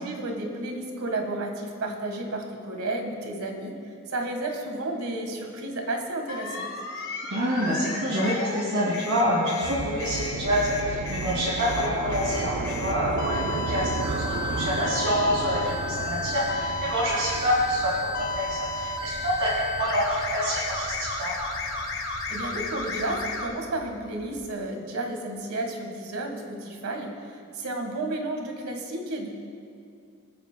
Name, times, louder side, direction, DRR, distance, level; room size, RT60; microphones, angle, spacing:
voice 1, 0.0-6.7 22.0-29.3, right 2 dB, 90° right, 3 dB, 1.5 m, -32 dB
sound 1, 6.3-8.6 8.9-23.5, left 3 dB, 65° left, 1.5 m, -33 dB
voice 2, 7.3-14.2 14.5-21.3, equal, 65° right, -7 dB, 2.1 m, -27 dB
sound 2, 9.6-24.5, right 3 dB, 50° right, 0.5 m, -35 dB
24.5 x 9.1 x 2.2 m, 2.4 s
head